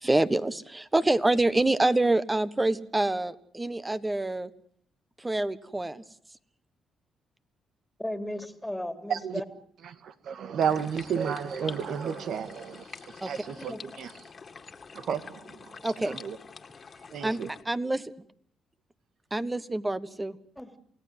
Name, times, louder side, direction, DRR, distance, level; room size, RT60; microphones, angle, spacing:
voice 1, 0.0-4.5 5.2-6.0 13.2-13.3 15.8-16.2 17.2-17.4 17.6-18.1 19.3-20.4, right 2 dB, 15° right, 1.4 m, -26 dB
voice 2, 8.0-9.4 13.6-13.8 20.6-20.8, left 1 dB, 5° left, 3.0 m, -35 dB
voice 3, 9.1-9.4 9.8-14.1 14.9-16.4 17.1-17.5, right 7 dB, 70° right, 1.9 m, -32 dB
sound 1, 10.6-17.6, left 5 dB, 40° left, 2.2 m, -46 dB
28.5 x 17.5 x 7.9 m
cardioid pair, 90°, 0 cm